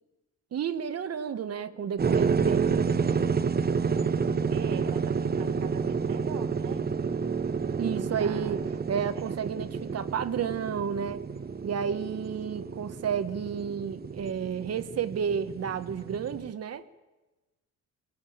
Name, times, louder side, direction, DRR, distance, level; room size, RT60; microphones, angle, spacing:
voice 1, 0.5-2.7 7.8-8.6 8.9-11.2 11.6-16.8, right 7 dB, 55° right, 1.2 m, -31 dB
sound 1, 2.0-16.5, right 5 dB, 30° right, 1.1 m, -29 dB
voice 2, 4.5-6.9 8.2-8.6 9.1-9.4 11.8-12.3, right 9 dB, 80° right, 1.9 m, -44 dB
19.5 x 19.5 x 8.7 m
cardioid pair, 90°, 30 cm